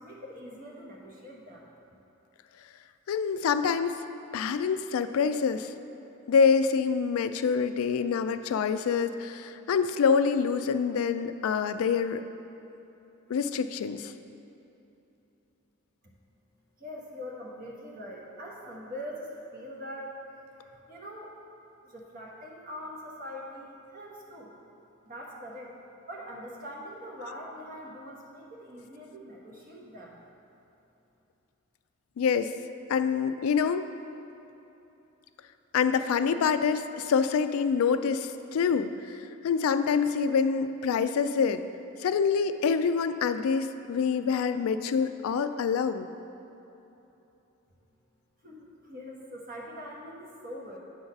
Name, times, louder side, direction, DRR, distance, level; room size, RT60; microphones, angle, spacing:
voice 1, 0.0-1.7 16.8-21.3 21.8-24.6 25.0-25.7 26.1-30.2 48.4-50.8, equal, 40° right, -3 dB, 1.1 m, -43 dB
voice 2, 3.1-4.0 4.3-5.7 6.3-12.2 13.3-14.1 32.2-32.5 32.9-33.9 35.7-41.6 42.0-46.1, left 6 dB, 80° left, 10 dB, 0.3 m, -26 dB
8.5 x 4.0 x 5.9 m, 3.0 s
head